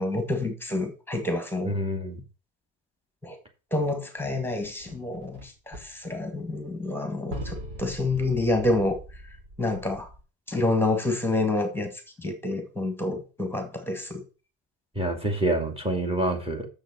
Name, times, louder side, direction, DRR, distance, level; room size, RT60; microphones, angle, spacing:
voice 1, 0.0-1.7 3.2-3.4 3.7-9.0 9.6-10.1 10.5-11.9 12.2-14.2, left 2 dB, 5° left, 2.0 m, -28 dB
voice 2, 1.6-2.2 15.0-16.7, right 1 dB, 15° right, 2.5 m, -27 dB
sound 1, 4.2-5.5 5.7-6.7 7.0-7.1 7.3-10.2, right 1 dB, 75° right, 5.0 m, -41 dB
7.0 x 6.5 x 6.3 m
cardioid pair, 135°, 38 cm